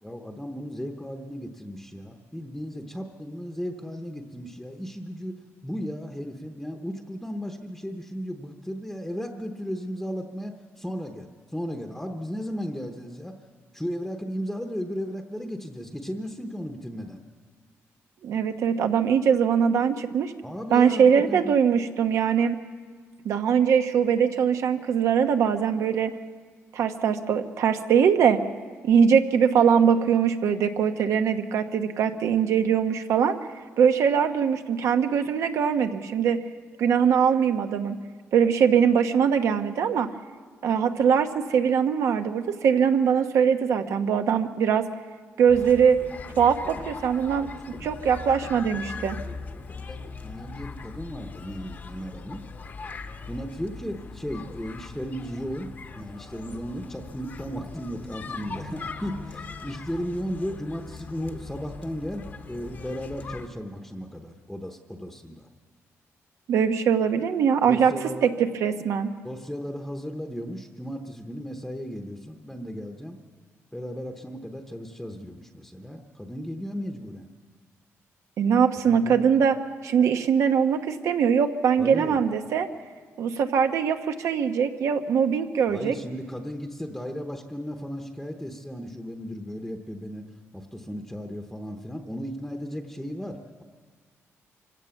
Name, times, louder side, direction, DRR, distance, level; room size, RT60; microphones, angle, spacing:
voice 1, 0.0-5.4 5.6-13.3 13.7-17.2 20.4-21.5 47.2-47.9 49.1-52.4 53.3-55.7 55.9-65.5 67.7-68.3 69.2-73.2 73.7-77.3 78.9-79.2 81.8-82.2 85.7-90.3 90.5-93.6, equal, 5° left, 4 dB, 0.9 m, -35 dB
voice 2, 18.2-20.3 20.7-22.6 23.2-26.1 26.7-28.4 28.8-33.4 33.8-36.4 36.8-38.0 38.3-40.1 40.6-44.9 45.4-46.0 46.4-47.5 47.8-49.2 66.5-68.0 68.2-69.1 78.4-79.6 79.8-82.7 83.2-86.0, right 7 dB, 85° right, 7 dB, 1.1 m, -22 dB
sound 1, 45.5-63.5, left 4 dB, 35° left, 0.9 m, -40 dB
25.0 x 16.5 x 7.0 m, 1.6 s
wide cardioid pair, 170°, 5 cm